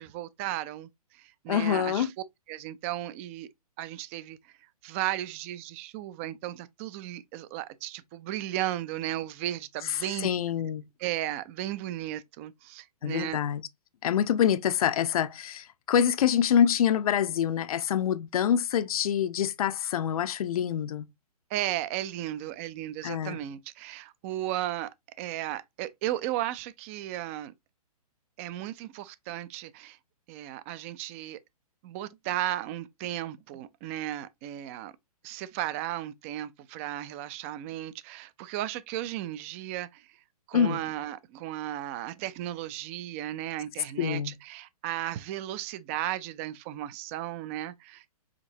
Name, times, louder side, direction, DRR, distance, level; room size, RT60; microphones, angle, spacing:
voice 1, 0.0-2.1 2.5-3.5 3.8-4.4 4.8-10.3 11.0-13.4 21.5-24.9 25.2-27.5 28.4-30.0 30.3-31.4 31.8-34.9 35.2-40.2 40.5-48.1, right 13 dB, 20° right, 0.3 m, -35 dB
voice 2, 1.5-2.1 9.8-10.9 13.0-13.6 14.0-21.1 23.0-23.4 40.5-40.8 44.0-44.4, left 9 dB, 65° left, 0.6 m, -26 dB
5.0 x 3.7 x 2.7 m
hypercardioid pair, 145°, 20 cm